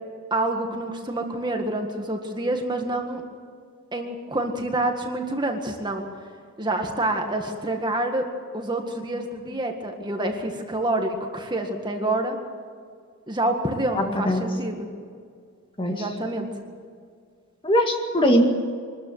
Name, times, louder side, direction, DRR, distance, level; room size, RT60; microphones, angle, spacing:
voice 1, 0.3-3.2 3.9-6.1 6.6-8.3 8.5-12.4 13.3-14.9 15.9-16.5, right 1 dB, 20° right, 3 dB, 1.8 m, -27 dB
voice 2, 13.9-14.5 15.8-16.0 17.6-18.5, equal, 25° left, 3 dB, 2.1 m, -21 dB
24.0 x 13.5 x 9.4 m, 2.1 s
head